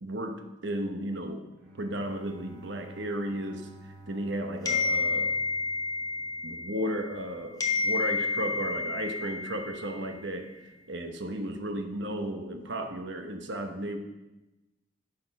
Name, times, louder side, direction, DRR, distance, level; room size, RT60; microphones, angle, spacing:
voice 1, 0.0-1.5 1.8-3.7 4.1-5.4 6.4-10.6 10.9-14.0, right 1 dB, 60° right, 5 dB, 1.0 m, -34 dB
Bowed string instrument, 1.5-6.8, right 2 dB, 80° right, 2.8 m, -51 dB
sound 1, 4.7-7.3 7.6-10.2, left 4 dB, 20° left, 1.0 m, -30 dB
10.5 x 6.9 x 5.4 m, 1.0 s
head